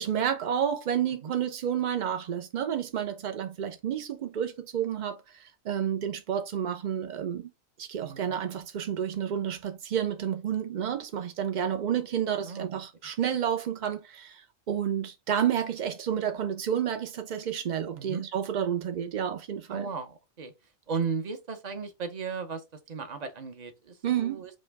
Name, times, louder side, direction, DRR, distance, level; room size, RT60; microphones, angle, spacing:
voice 1, 0.0-7.5 7.8-19.9 24.0-24.4, right 9 dB, 75° right, 0.4 m, -30 dB
voice 2, 8.0-8.4 12.4-12.8 17.9-18.2 19.7-20.5 20.9-22.6 22.9-24.6, right 5 dB, 40° right, 0.7 m, -35 dB
5.2 x 2.2 x 3.3 m
omnidirectional pair, 1.4 m